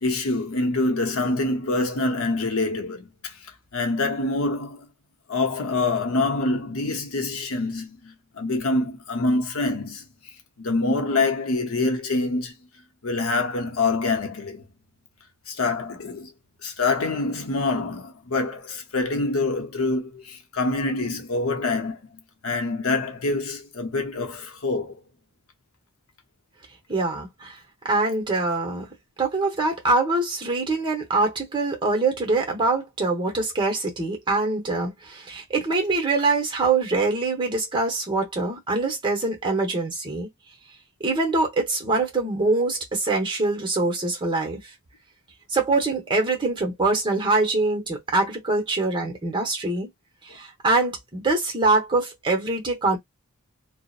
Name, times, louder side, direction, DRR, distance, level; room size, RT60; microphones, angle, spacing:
voice 1, 0.0-3.4 3.7-4.9 5.3-10.0 10.6-12.5 13.0-14.6 15.5-16.3 16.6-25.0, left 3 dB, 70° left, 0.7 m, -25 dB
voice 2, 26.9-27.6 27.8-28.9 29.2-40.3 41.0-44.6 45.5-49.9 50.2-53.0, right 3 dB, 20° right, 0.8 m, -24 dB
2.8 x 2.0 x 2.4 m
head